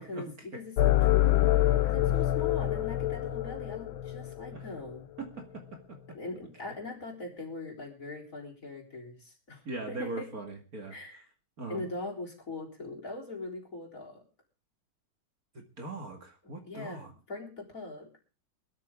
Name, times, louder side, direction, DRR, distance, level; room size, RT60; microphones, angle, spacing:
voice 1, 0.0-5.1 6.1-10.3 10.9-11.2 11.7-14.2 16.6-17.0 17.3-18.1, left 2 dB, 40° left, 0 dB, 4.3 m, -41 dB
sound 1, 0.8-4.8, left 14 dB, 75° left, 1.8 m, -26 dB
voice 2, 5.2-6.0 9.7-11.0 11.6-11.9 15.5-17.1, right 2 dB, 45° right, 4 dB, 2.5 m, -40 dB
21.5 x 13.0 x 3.7 m, 0.34 s
omnidirectional pair, 2.3 m